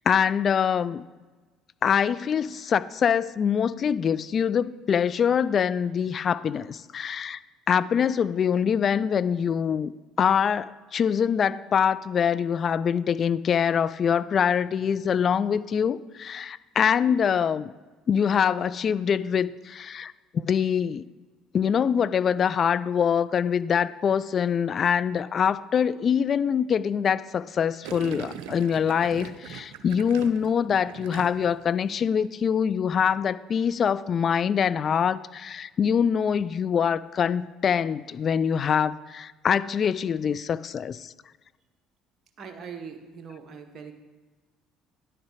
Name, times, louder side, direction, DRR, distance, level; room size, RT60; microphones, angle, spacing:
voice 1, 0.1-1.0 1.8-7.4 7.7-9.9 10.2-17.7 18.1-21.0 21.5-41.1, left 7 dB, 45° left, 15 dB, 0.3 m, -24 dB
Gurgling, 27.8-31.6 31.9-32.3, right 9 dB, 70° right, 0.6 m, -41 dB
voice 2, 42.4-43.9, right 6 dB, 45° right, 5 dB, 1.3 m, -41 dB
10.5 x 6.6 x 4.8 m, 1.3 s
hypercardioid pair, 60°, 0 cm